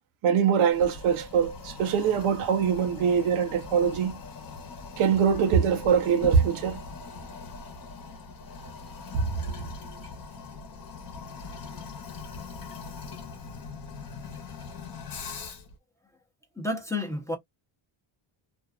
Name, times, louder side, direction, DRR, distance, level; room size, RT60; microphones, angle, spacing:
voice 1, 0.2-4.2 5.0-6.8 9.1-9.2, right 7 dB, 75° right, 0.8 m, -23 dB
Toilet flush, 0.7-15.8, left 4 dB, 45° left, 1.0 m, -41 dB
voice 2, 16.6-17.4, left 2 dB, 5° left, 0.7 m, -30 dB
2.6 x 2.3 x 2.4 m
cardioid pair, 130°, 50 cm